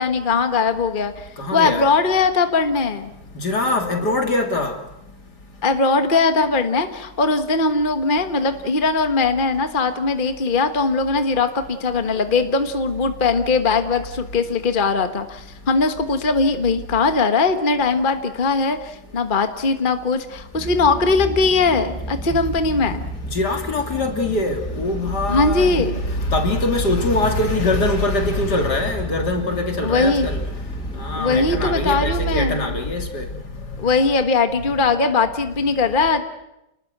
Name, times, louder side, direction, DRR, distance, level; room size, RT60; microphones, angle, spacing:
voice 1, 0.0-3.1 5.6-23.0 25.3-26.0 29.8-30.3 31.1-32.9 33.8-36.2, left 4 dB, 30° left, 1.5 m, -20 dB
voice 2, 1.4-1.8 3.3-4.7 23.3-25.9 26.3-30.4 30.9-33.3, left 2 dB, 70° left, 3.4 m, -22 dB
sound 1, 20.5-32.4, right 2 dB, 5° left, 1.8 m, -33 dB
29.5 x 20.0 x 8.0 m
omnidirectional pair, 1.8 m